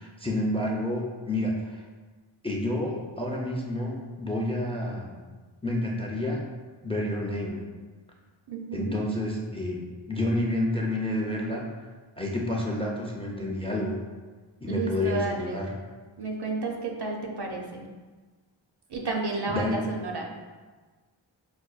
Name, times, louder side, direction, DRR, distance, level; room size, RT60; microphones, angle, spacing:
voice 1, 0.0-1.8 2.4-5.2 5.6-6.4 6.8-7.6 8.7-11.7 12.2-14.0 14.6-15.7 19.5-19.8, left 1 dB, 15° left, -2 dB, 0.4 m, -29 dB
voice 2, 8.5-9.0 14.7-15.6 16.2-17.8 18.9-20.3, right 3 dB, 55° right, 1 dB, 0.6 m, -31 dB
5.0 x 2.2 x 2.3 m, 1.3 s
wide cardioid pair, 45°, 49 cm